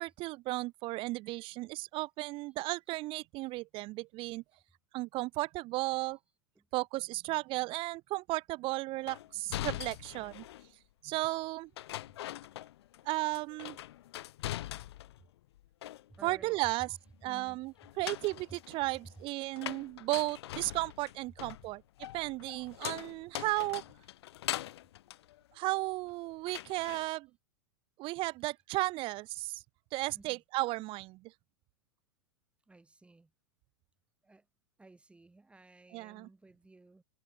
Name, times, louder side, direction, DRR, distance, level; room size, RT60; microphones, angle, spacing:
voice 1, 0.0-4.4 4.9-6.2 6.7-10.5 11.0-11.7 13.0-13.8 16.2-16.9 17.2-21.8 22.1-23.8 25.5-27.3 28.0-29.6 29.9-31.3 35.9-36.3, right 20 dB, 40° right, 0.6 m, -34 dB
sound 1, 9.1-10.7 11.8-13.1 13.3-15.2 15.5-16.4 17.8-26.1 26.5-27.1, left 14 dB, 75° left, 0.8 m, -42 dB
voice 2, 16.1-16.6 17.2-17.7 19.2-19.3 30.1-30.4 32.7-33.3 34.2-34.5 34.8-37.0, right 2 dB, 10° right, 7.4 m, -56 dB
hypercardioid pair, 120°, 14 cm